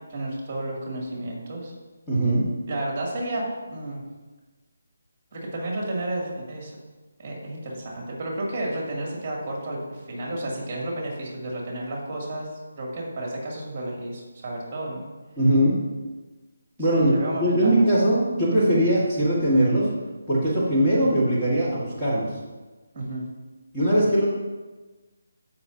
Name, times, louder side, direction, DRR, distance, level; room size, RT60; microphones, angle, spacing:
voice 1, 0.1-1.7 2.7-4.0 5.3-6.7 7.2-12.5 12.7-15.0 16.8-17.8 22.9-23.2, right 1 dB, 30° right, -3 dB, 2.6 m, -32 dB
voice 2, 2.1-2.5 15.4-15.8 16.8-19.9 20.3-22.3 23.7-24.3, right 1 dB, 5° left, -12 dB, 1.9 m, -21 dB
16.5 x 5.9 x 2.8 m, 1.2 s
figure-of-eight pair, 165°, 0 cm